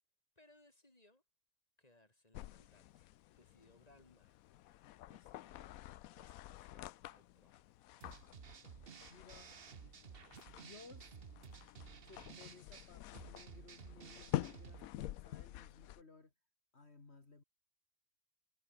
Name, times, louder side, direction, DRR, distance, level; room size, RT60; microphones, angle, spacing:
voice 1, 0.4-1.2 1.8-3.1 3.4-5.9 6.2-7.7, left 1 dB, 25° left, 4.7 m, -68 dB
sound 1, 2.3-16.0, left 14 dB, 80° left, 1.0 m, -48 dB
sound 2, 8.0-14.9, right 6 dB, 45° right, 1.2 m, -54 dB
voice 2, 9.1-9.5 9.9-10.0 10.5-11.2 12.0-16.3 16.7-17.4, left 3 dB, 50° left, 3.0 m, -60 dB
omnidirectional pair, 1.5 m